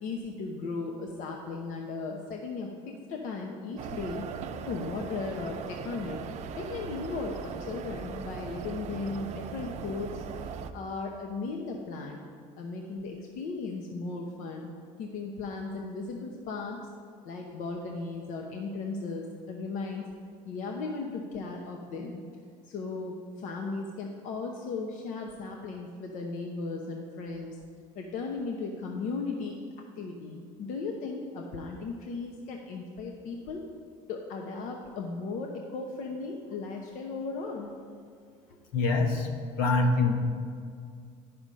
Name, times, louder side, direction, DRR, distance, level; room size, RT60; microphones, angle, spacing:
voice 1, 0.0-4.2 4.7-6.2 6.6-12.2 12.6-14.7 15.0-16.8 17.2-20.0 20.4-22.2 22.6-27.6 27.9-29.6 30.0-33.6 34.1-37.8, left 4 dB, 65° left, 1 dB, 0.9 m, -36 dB
sound 1, 3.8-10.7, right 6 dB, 50° right, 0.5 m, -39 dB
voice 2, 38.7-39.3 39.6-40.1, left 3 dB, 80° left, 3 dB, 1.2 m, -24 dB
9.9 x 6.1 x 5.2 m, 2.2 s
cardioid pair, 115°, 14 cm